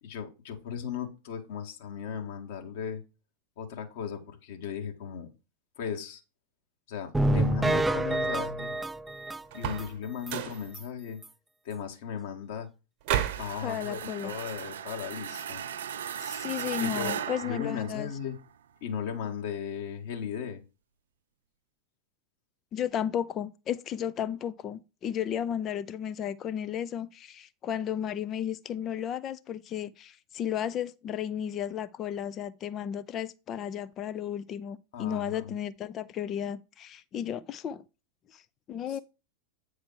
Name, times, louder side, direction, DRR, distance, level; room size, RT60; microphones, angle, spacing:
voice 1, 0.0-3.0 3.6-5.3 5.8-6.2 6.9-8.7 9.5-11.2 11.6-12.7 13.4-15.6 16.8-18.4 18.8-20.6 34.9-35.6 38.9-39.0, left 7 dB, 55° left, 1.9 m, -36 dB
sound 1, 7.1-9.9 10.3-10.4 10.7-10.8 11.2-11.3, right 1 dB, 5° right, 0.4 m, -28 dB
sound 2, 9.5-9.9 10.2-10.6 13.0-13.5, right 11 dB, 45° right, 1.2 m, -30 dB
sound 3, 13.2-18.4, right 8 dB, 65° right, 0.5 m, -37 dB
voice 2, 13.6-14.3 16.2-18.1 22.7-37.8 38.3-38.4 38.7-39.0, left 9 dB, 30° left, 0.6 m, -34 dB
9.2 x 4.7 x 4.8 m
figure-of-eight pair, 90°, 0 cm